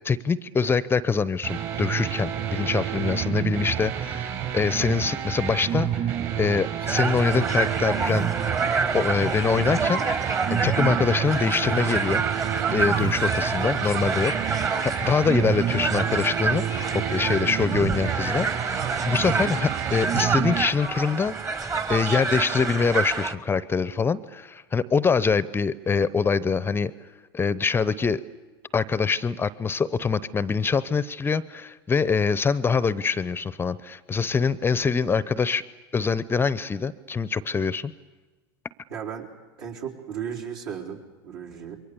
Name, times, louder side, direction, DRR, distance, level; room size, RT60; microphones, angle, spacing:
voice 1, 0.0-8.3 8.9-12.2 12.7-14.3 14.8-21.6 21.9-26.9 27.3-28.2 28.7-35.6 35.9-37.9, left 5 dB, 15° left, 18 dB, 0.7 m, -24 dB
sound 1, 1.4-20.6, right 10 dB, 45° right, 4.6 m, -29 dB
sound 2, 5.7-6.1 6.8-7.0 8.0-8.4 9.8-10.3 10.6-10.7 11.6-12.0 12.9-13.8 14.7-15.1, right 3 dB, 85° right, 3.8 m, -40 dB
sound 3, 6.9-23.3, right 4 dB, 25° right, 1.6 m, -28 dB
voice 2, 38.9-39.3 39.6-41.9, right 8 dB, 65° right, -1 dB, 4.1 m, -36 dB
28.0 x 23.0 x 6.9 m, 1.3 s
figure-of-eight pair, 85°, 13 cm